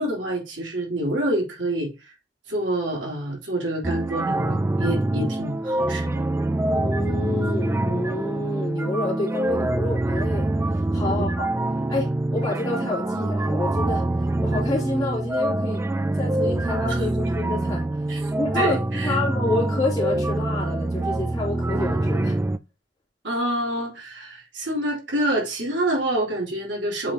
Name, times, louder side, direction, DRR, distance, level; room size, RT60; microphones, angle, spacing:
voice 1, 0.0-2.1 2.5-6.2 10.9-11.3 18.1-18.2 18.5-19.2 23.2-27.1, right 1 dB, 90° right, 3.3 m, -27 dB
sound 1, 3.8-22.6, right 1 dB, 15° right, 0.3 m, -25 dB
voice 2, 6.7-10.5 10.9-11.5 11.9-14.0 14.4-15.8 16.1-17.8 18.3-22.4, left 2 dB, 20° left, 3.2 m, -28 dB
7.5 x 5.1 x 2.8 m
head